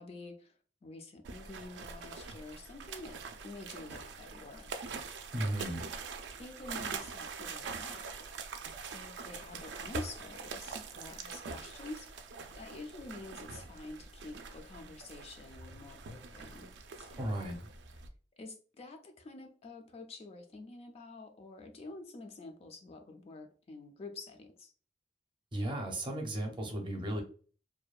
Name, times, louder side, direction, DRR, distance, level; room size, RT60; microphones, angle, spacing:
voice 1, 0.0-4.8 5.6-5.8 6.4-8.1 8.9-12.2 12.5-16.7 17.0-17.5 18.4-24.7, left 2 dB, 35° left, 0.3 m, -48 dB
sound 1, 1.2-18.1, right 4 dB, 80° right, 0.4 m, -44 dB
voice 2, 5.3-5.8 17.2-17.6 25.5-27.2, right 1 dB, 30° right, 0.6 m, -35 dB
2.6 x 2.2 x 2.3 m
head